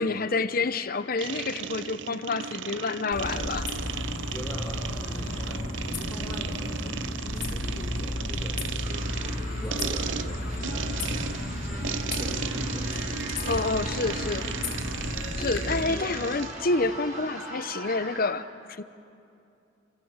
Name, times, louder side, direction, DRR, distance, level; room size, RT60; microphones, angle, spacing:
voice 1, 0.0-3.7 13.5-14.5 15.4-18.8, left 3 dB, 50° left, 12 dB, 0.9 m, -28 dB
sound 1, 1.2-16.6, right 6 dB, 70° right, 0.7 m, -36 dB
sound 2, 3.1-15.8, left 1 dB, 80° left, 4.0 m, -33 dB
voice 2, 4.2-8.6 9.1-14.2 15.4-16.2, equal, 15° left, -2 dB, 4.0 m, -42 dB
sound 3, 8.8-18.2, right 1 dB, 35° right, 7.9 m, -40 dB
29.5 x 25.0 x 7.4 m, 2.6 s
head